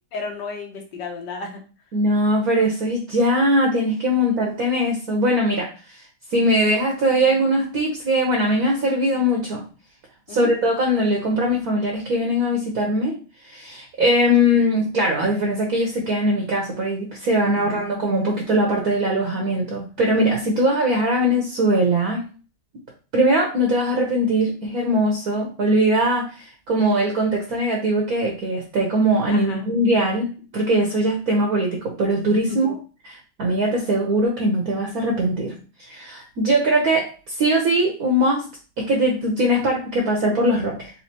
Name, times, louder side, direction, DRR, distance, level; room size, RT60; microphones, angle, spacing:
voice 1, 0.1-1.6 10.3-10.5 17.6-17.9 29.3-29.7 32.4-32.8, left 4 dB, 60° left, 2 dB, 1.5 m, -33 dB
voice 2, 1.9-6.0 6.3-9.6 10.3-13.2 13.5-22.2 23.1-32.7 33.0-35.5 35.9-38.4 38.8-40.9, equal, 55° right, 0 dB, 1.2 m, -21 dB
4.2 x 3.9 x 2.9 m, 0.36 s
omnidirectional pair, 2.3 m